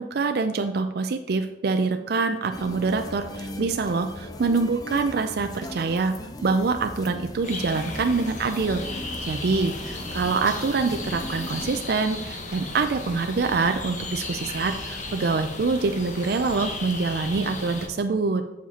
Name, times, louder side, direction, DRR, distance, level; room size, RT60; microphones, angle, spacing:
voice 1, 0.0-6.1 6.4-18.4, right 4 dB, 55° right, 6 dB, 0.4 m, -25 dB
sound 1, 2.5-11.8, left 1 dB, 20° left, 0.6 m, -39 dB
sound 2, 7.4-17.9, left 2 dB, 40° left, 1.1 m, -35 dB
7.3 x 7.2 x 4.2 m, 0.96 s
head